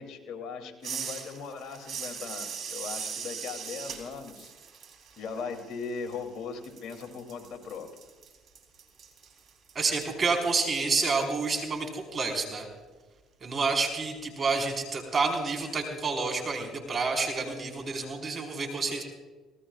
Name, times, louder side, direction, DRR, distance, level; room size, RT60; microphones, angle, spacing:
voice 1, 0.0-4.5 5.2-7.9, left 5 dB, 65° left, 4 dB, 3.2 m, -39 dB
sound 1, 0.8-6.4 6.6-11.5, right 7 dB, 55° right, 3.8 m, -41 dB
voice 2, 9.7-12.7 13.4-19.0, right 4 dB, 40° right, 2 dB, 4.9 m, -29 dB
26.5 x 19.0 x 2.5 m, 1.3 s
supercardioid pair, 70°, 0 cm